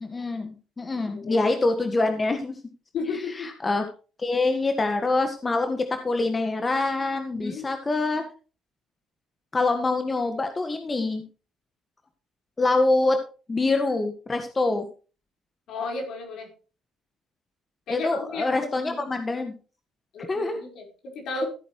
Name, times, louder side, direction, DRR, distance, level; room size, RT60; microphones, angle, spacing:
voice 1, 0.0-2.5 3.1-3.9 4.2-8.2 9.5-11.2 12.6-13.2 13.5-14.9 17.9-19.5 20.3-20.6, left 2 dB, 30° left, 6 dB, 1.6 m, -25 dB
voice 2, 2.9-3.5 7.3-7.7 15.7-16.5 17.9-19.1 20.1-20.9 21.1-21.5, left 3 dB, 70° left, 2 dB, 4.8 m, -33 dB
15.0 x 8.6 x 3.2 m, 0.35 s
supercardioid pair, 70°, 0 cm